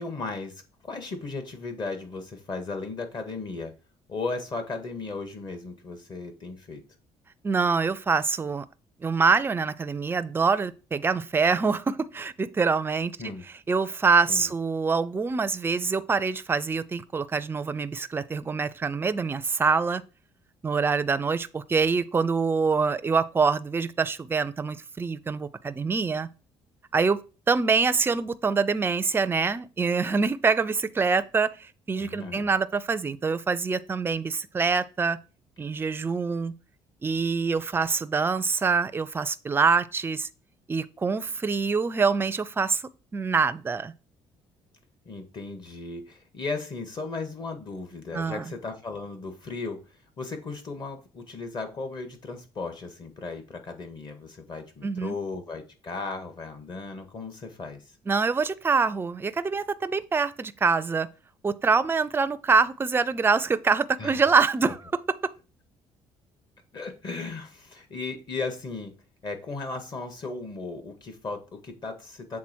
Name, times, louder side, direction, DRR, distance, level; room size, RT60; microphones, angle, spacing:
voice 1, 0.0-3.7 4.1-6.8 13.2-13.4 14.3-14.5 32.0-32.5 45.1-49.8 50.2-57.8 64.0-64.3 64.6-64.7 66.7-68.9 69.2-72.4, left 3 dB, 40° left, 1.8 m, -36 dB
voice 2, 7.4-8.7 9.0-13.3 13.7-20.0 20.6-26.3 26.9-27.2 27.5-35.2 35.6-36.5 37.0-40.3 40.7-42.8 43.1-43.9 48.1-48.5 54.8-55.2 58.1-61.1 61.4-64.8, right 5 dB, 20° right, 0.5 m, -25 dB
7.5 x 3.7 x 4.5 m
cardioid pair, 125°, 11 cm